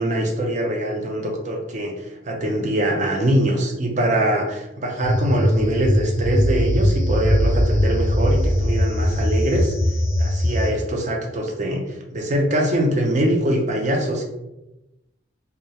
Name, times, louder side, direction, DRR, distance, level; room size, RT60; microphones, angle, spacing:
voice 1, 0.0-9.7 10.2-14.2, right 1 dB, 40° right, 1 dB, 0.4 m, -23 dB
sound 1, 5.0-10.7, equal, 35° left, 0.3 m, -20 dB
2.3 x 2.0 x 2.7 m, 0.93 s
head